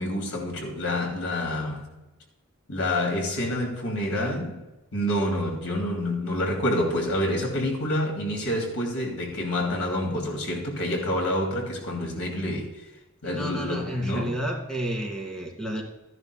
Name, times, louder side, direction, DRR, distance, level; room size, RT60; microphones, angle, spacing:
voice 1, 0.0-1.9 2.7-4.6 4.9-12.7 13.2-14.4, left 1 dB, 75° left, 1 dB, 2.7 m, -28 dB
voice 2, 13.2-15.8, equal, 5° left, -1 dB, 2.2 m, -31 dB
15.0 x 11.0 x 2.2 m, 1.0 s
head